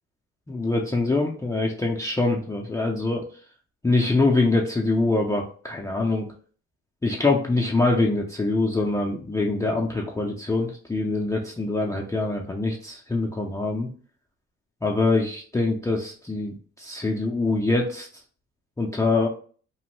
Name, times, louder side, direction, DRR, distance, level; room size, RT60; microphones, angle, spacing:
voice 1, 0.5-3.3 3.8-6.3 7.0-13.9 14.8-18.1 18.8-19.3, left 2 dB, 10° left, 0 dB, 0.4 m, -24 dB
3.0 x 2.1 x 3.0 m, 0.42 s
cardioid pair, 90°, 30 cm